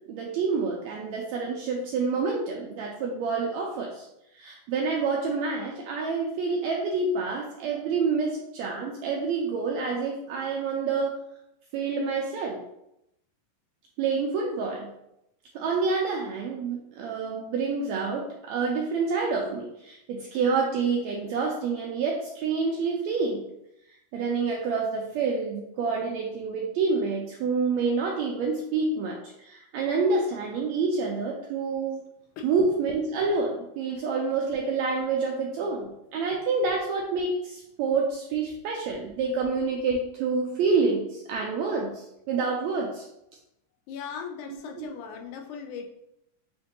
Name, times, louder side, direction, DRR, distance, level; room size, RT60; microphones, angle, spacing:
voice 1, 0.1-4.1 4.3-11.2 11.7-12.6 14.0-14.9 15.5-23.4 24.1-32.0 32.4-43.1 44.8-44.9, right 4 dB, 85° right, -1 dB, 1.6 m, -28 dB
voice 2, 43.9-45.8, left 7 dB, 80° left, 2 dB, 1.9 m, -38 dB
6.8 x 2.6 x 2.7 m, 0.82 s
omnidirectional pair, 3.6 m